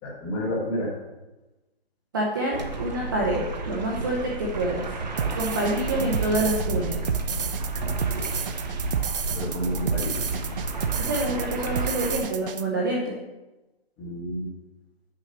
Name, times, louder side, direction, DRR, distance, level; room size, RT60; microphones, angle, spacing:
voice 1, 0.0-0.9 9.3-10.2 14.0-14.5, equal, 10° left, -4 dB, 1.5 m, -30 dB
voice 2, 2.1-4.9 5.3-7.0 11.0-13.2, right 1 dB, 20° right, -3 dB, 0.7 m, -27 dB
sound 1, 2.5-12.2, right 3 dB, 45° right, 1.1 m, -31 dB
sound 2, 5.2-12.6, right 6 dB, 60° right, 0.7 m, -30 dB
6.7 x 6.2 x 6.9 m, 1.1 s
hypercardioid pair, 165°, 31 cm